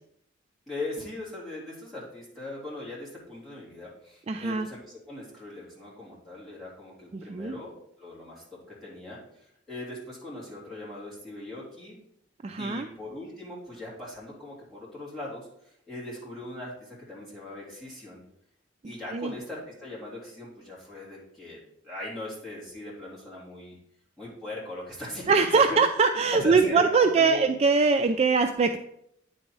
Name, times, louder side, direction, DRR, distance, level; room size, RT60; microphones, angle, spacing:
voice 1, 0.7-8.4 8.8-12.0 12.6-18.2 18.8-21.6 21.8-23.7 24.2-25.4 25.7-25.8 26.3-27.5, left 2 dB, ahead, -8 dB, 3.2 m, -39 dB
voice 2, 4.3-4.7 7.1-7.6 12.4-12.9 19.1-19.3 25.3-28.8, right 4 dB, 35° right, 6 dB, 0.3 m, -22 dB
9.6 x 4.1 x 4.7 m, 0.75 s
head